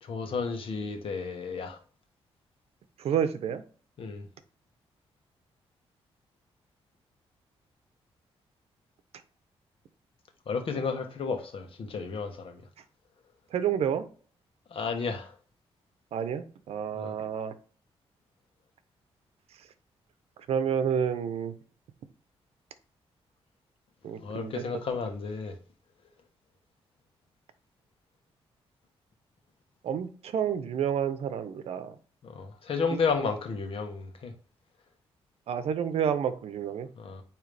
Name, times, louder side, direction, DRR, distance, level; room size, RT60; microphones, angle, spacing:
voice 1, 0.0-1.8 4.0-4.3 10.5-12.6 14.7-15.3 16.9-17.1 24.2-25.5 32.2-34.3 36.9-37.2, left 5 dB, 60° left, 1.3 m, -32 dB
voice 2, 3.0-3.6 13.5-14.0 16.1-17.5 20.5-21.5 24.0-24.6 29.8-31.9 35.5-36.9, right 8 dB, 75° right, 0.8 m, -29 dB
9.0 x 3.0 x 3.4 m
cardioid pair, 105°, 11 cm